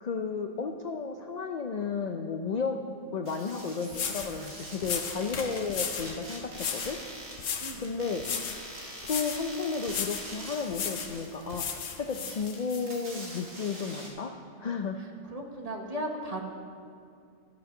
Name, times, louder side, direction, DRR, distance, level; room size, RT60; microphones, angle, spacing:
voice 1, 0.0-2.8 3.1-7.0 7.8-8.2 9.1-15.0, left 5 dB, 55° left, 5 dB, 0.4 m, -33 dB
sound 1, 3.2-14.1, right 1 dB, 65° right, 2.0 m, -44 dB
sound 2, 3.5-3.6 3.9-4.4 4.8-6.1 6.6-7.0 7.4-7.8 8.2-8.6 9.0-9.4 9.9-10.3 10.7-11.1 11.5-12.8, left 7 dB, 85° left, 1.2 m, -35 dB
voice 2, 7.6-7.9 15.3-16.4, right 1 dB, 30° right, 1 dB, 1.1 m, -36 dB
14.0 x 6.3 x 6.0 m, 2.4 s
omnidirectional pair, 1.3 m